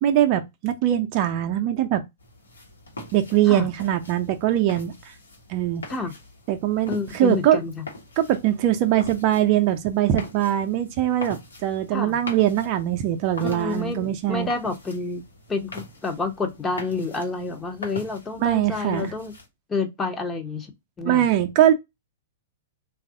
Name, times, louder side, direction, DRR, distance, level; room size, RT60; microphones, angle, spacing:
voice 1, 0.0-2.0 3.1-4.9 5.5-5.8 6.5-7.6 8.2-14.5 18.4-19.1 21.0-21.7, right 12 dB, 40° right, 0.5 m, -22 dB
sound 1, 2.2-19.5, left 2 dB, 80° left, 1.1 m, -43 dB
voice 2, 6.9-7.8 11.9-12.2 13.4-15.2 15.5-19.3 19.7-20.7 21.0-21.2, left 4 dB, 15° left, 0.7 m, -29 dB
3.2 x 2.4 x 3.7 m
figure-of-eight pair, 110°, 0 cm